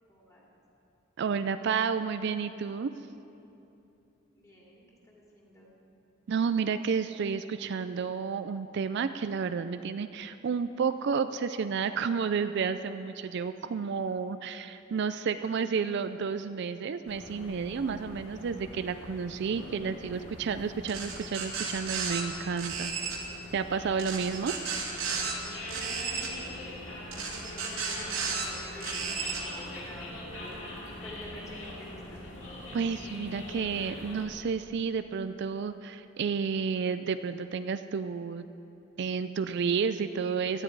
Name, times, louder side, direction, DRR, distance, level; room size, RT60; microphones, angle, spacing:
voice 1, 0.1-0.5 4.3-5.7 25.4-25.6 26.6-32.2, left 1 dB, 15° left, -4 dB, 2.7 m, -49 dB
voice 2, 1.2-2.9 6.3-22.9 23.5-24.5 32.7-38.5 39.0-40.6, right 6 dB, 55° right, 11 dB, 0.4 m, -31 dB
sound 1, 17.1-34.3, left 1 dB, 65° left, 2.2 m, -43 dB
sound 2, 20.9-22.2 22.6-23.2 24.0-25.3 25.7-26.3 27.1-28.5 28.8-29.4, right 6 dB, 85° right, 2.1 m, -33 dB
17.5 x 11.5 x 4.7 m, 2.9 s
head